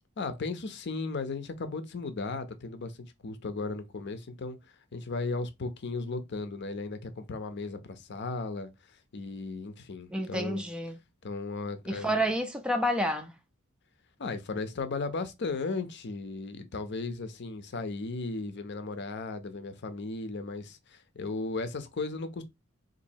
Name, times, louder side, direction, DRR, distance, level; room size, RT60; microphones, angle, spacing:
voice 1, 0.2-8.7 9.1-10.6 11.2-12.2 14.2-22.4, left 3 dB, 55° left, 0.6 m, -36 dB
voice 2, 10.1-11.0 11.9-13.3, equal, 5° right, 0.3 m, -29 dB
4.0 x 2.6 x 2.7 m
head